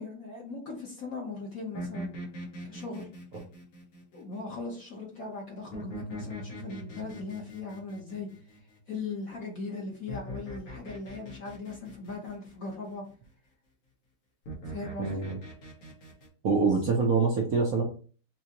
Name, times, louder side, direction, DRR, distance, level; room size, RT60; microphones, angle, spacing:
voice 1, 0.0-2.1 2.6-3.1 4.1-8.3 8.9-13.0 14.7-15.3, left 3 dB, 50° left, -1 dB, 1.2 m, -39 dB
sound 1, 1.7-4.6 5.7-9.2 10.1-12.7 14.5-16.3, equal, 90° left, 2.4 m, -42 dB
voice 2, 15.0-15.4 16.4-17.8, right 4 dB, 60° right, -1 dB, 0.9 m, -25 dB
6.0 x 2.7 x 2.9 m, 0.39 s
omnidirectional pair, 2.4 m